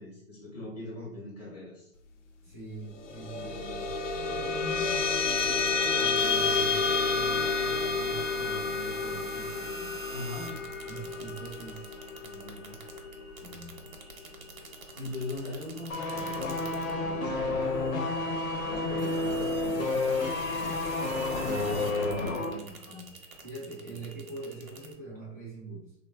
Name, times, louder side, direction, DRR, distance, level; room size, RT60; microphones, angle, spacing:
voice 1, 0.0-1.9 3.4-3.5 10.1-10.6 14.9-17.4 18.6-20.0 21.3-22.1 23.9-24.0, left 2 dB, 30° left, -6 dB, 0.8 m, -41 dB
voice 2, 2.4-3.8 4.2-9.9 10.8-12.8 13.4-13.8 20.5-20.8 21.4-25.9, right 2 dB, 10° right, -9 dB, 0.4 m, -44 dB
sound 1, 3.0-13.8, left 4 dB, 60° left, 0.5 m, -30 dB
sound 2, 5.3-24.9, right 3 dB, 85° right, 0.8 m, -45 dB
sound 3, 15.9-22.6 22.9-23.0, left 2 dB, 90° left, 0.8 m, -30 dB
3.4 x 2.0 x 2.3 m, 0.77 s
hypercardioid pair, 170°, 41 cm